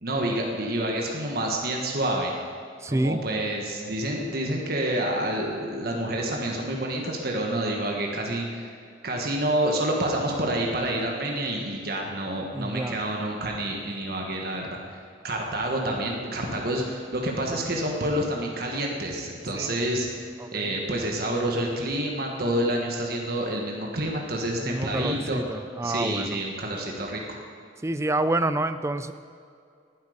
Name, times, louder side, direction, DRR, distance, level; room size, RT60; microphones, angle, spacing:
voice 1, 0.0-2.3 2.9-8.7 9.0-15.0 15.2-20.1 20.5-25.4 25.8-27.2, right 1 dB, 55° right, 0 dB, 1.5 m, -28 dB
voice 2, 2.8-3.2 12.5-13.0 19.5-19.7 20.4-20.8 24.6-26.4 27.8-29.1, right 2 dB, 15° right, 12 dB, 0.4 m, -28 dB
19.0 x 8.0 x 5.1 m, 2.3 s
head